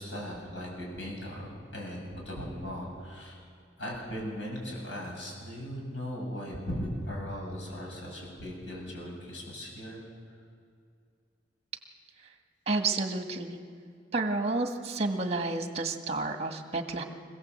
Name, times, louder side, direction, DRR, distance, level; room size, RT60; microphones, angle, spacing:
voice 1, 0.0-3.4 3.8-10.0 10.3-10.4, equal, 85° left, -1 dB, 7.8 m, -38 dB
voice 2, 12.7-13.6 14.1-17.0, right 3 dB, 35° right, 5 dB, 1.8 m, -30 dB
25.0 x 16.5 x 8.0 m, 2.3 s
head